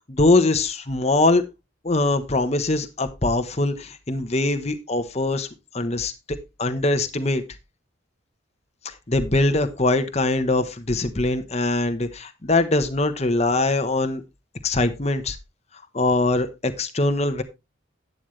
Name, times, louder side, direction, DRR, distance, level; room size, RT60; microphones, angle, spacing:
voice 1, 0.1-1.4 1.8-5.5 5.7-6.1 6.6-7.4 9.1-14.2 14.6-15.4 15.9-17.4, left 2 dB, 35° left, 8 dB, 1.1 m, -22 dB
11.5 x 9.4 x 3.3 m, 0.25 s
head